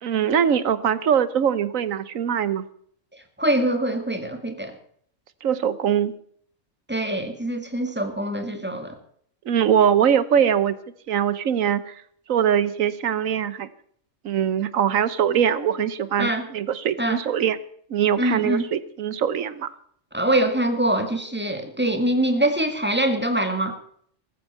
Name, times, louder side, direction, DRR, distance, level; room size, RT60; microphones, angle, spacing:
voice 1, 0.0-2.6 5.4-6.2 9.4-10.8 11.1-11.9 12.3-13.7 14.2-17.6 17.9-19.7, right 8 dB, 90° right, 16 dB, 1.3 m, -22 dB
voice 2, 3.4-4.8 6.9-9.0 16.2-16.5 17.0-17.2 18.2-18.6 20.1-23.7, right 1 dB, 10° right, 6 dB, 2.0 m, -24 dB
14.5 x 14.0 x 5.6 m, 0.62 s
omnidirectional pair, 1.3 m